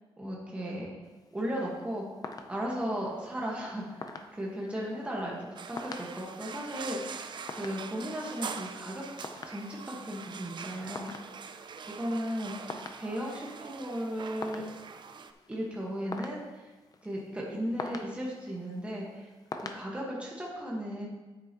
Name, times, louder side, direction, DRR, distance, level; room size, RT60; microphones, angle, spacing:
voice 1, 0.2-0.9 1.3-2.1 2.5-9.0 9.5-11.1 11.9-12.5 13.0-14.6 15.5-16.6 17.0-19.3 19.7-21.1, equal, 10° right, -4 dB, 1.5 m, -36 dB
sound 1, 1.0-19.8, left 3 dB, 40° left, 0.6 m, -47 dB
sound 2, 5.6-15.3, right 6 dB, 50° right, 0.5 m, -43 dB
9.5 x 8.2 x 3.0 m, 1.2 s
wide cardioid pair, 140°, 10 cm